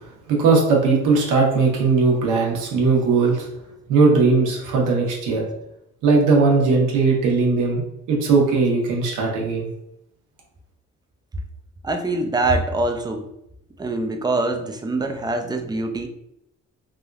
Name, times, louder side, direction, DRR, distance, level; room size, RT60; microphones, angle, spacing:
voice 1, 0.3-3.4 3.9-5.4 6.0-7.8 8.1-9.7, right 4 dB, 90° right, -1 dB, 1.0 m, -18 dB
voice 2, 11.8-13.2 13.8-16.1, right 2 dB, 15° right, 5 dB, 0.4 m, -24 dB
3.4 x 2.5 x 2.3 m, 0.82 s
cardioid pair, 90°, 30 cm